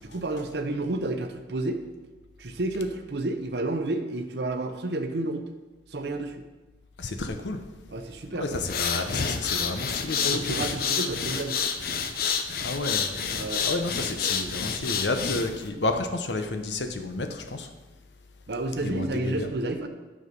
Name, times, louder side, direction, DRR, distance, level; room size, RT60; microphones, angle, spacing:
voice 1, 0.0-1.8 2.4-5.5 5.9-6.4 7.9-8.6 10.3-11.6 13.3-13.7 18.5-19.9, right 2 dB, 70° right, 5 dB, 0.8 m, -30 dB
voice 2, 7.0-7.6 8.4-10.4 12.6-13.1 13.6-17.7 18.8-19.5, left 2 dB, 90° left, 7 dB, 0.9 m, -30 dB
sound 1, 8.5-15.7, left 6 dB, 55° left, 0.7 m, -29 dB
9.6 x 6.3 x 5.4 m, 1.2 s
head